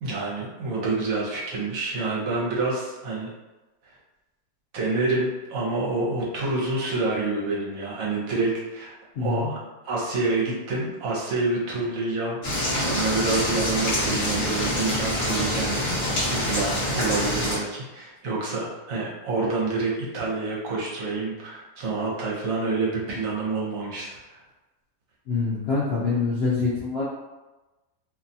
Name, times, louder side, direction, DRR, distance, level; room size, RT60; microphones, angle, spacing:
voice 1, 0.0-3.3 4.7-8.9 9.2-9.6 9.8-24.4, right 3 dB, 70° right, -4 dB, 1.1 m, -28 dB
voice 2, 9.2-9.5 25.3-27.0, left 4 dB, 70° left, -7 dB, 0.6 m, -25 dB
sound 1, 12.4-17.6, left 1 dB, 45° left, 1.3 m, -26 dB
2.6 x 2.2 x 2.6 m, 1.1 s
omnidirectional pair, 1.6 m